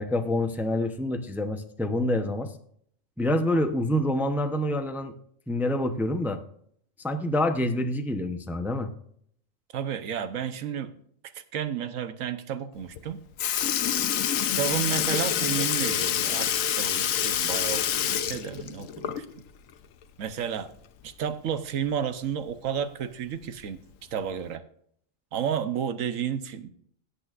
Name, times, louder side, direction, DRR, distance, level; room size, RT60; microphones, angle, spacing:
voice 1, 0.0-2.5 3.2-5.1 5.5-6.4 7.0-8.9, left 1 dB, ahead, 0.6 m, -27 dB
voice 2, 9.7-11.0 11.3-13.2 14.6-19.2 20.2-20.7 21.0-23.8 24.1-24.6 25.3-26.7, right 8 dB, 80° right, 1.2 m, -31 dB
Sink (filling or washing) / Liquid, 13.0-13.1 13.4-19.5 19.8-19.9 21.5-21.6 22.5-22.6 23.4-23.7 24.5-24.6, left 10 dB, 80° left, 1.1 m, -27 dB
17.0 x 8.4 x 2.5 m
omnidirectional pair, 1.4 m